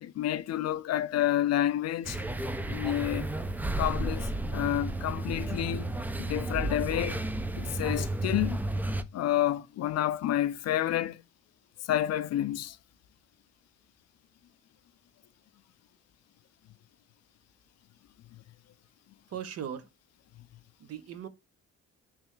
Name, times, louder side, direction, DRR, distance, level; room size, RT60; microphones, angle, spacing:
voice 1, 0.0-2.2 2.7-3.3 3.8-7.2 7.6-8.6 9.1-11.2 11.9-12.8, left 12 dB, 60° left, 0.4 m, -29 dB
sound 1, 2.0-9.0, right 2 dB, 5° right, 0.3 m, -32 dB
voice 2, 19.3-19.9 20.8-21.3, right 9 dB, 55° right, 0.7 m, -38 dB
3.4 x 3.1 x 3.0 m
cardioid pair, 90°, 30 cm